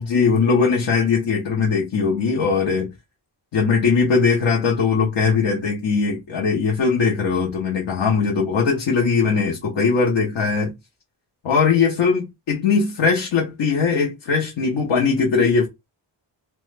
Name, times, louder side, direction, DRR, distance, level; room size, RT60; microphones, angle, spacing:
voice 1, 0.0-2.9 3.5-10.7 11.4-15.7, left 5 dB, 70° left, 0.9 m, -20 dB
3.0 x 2.2 x 3.2 m
wide cardioid pair, 95°, 46 cm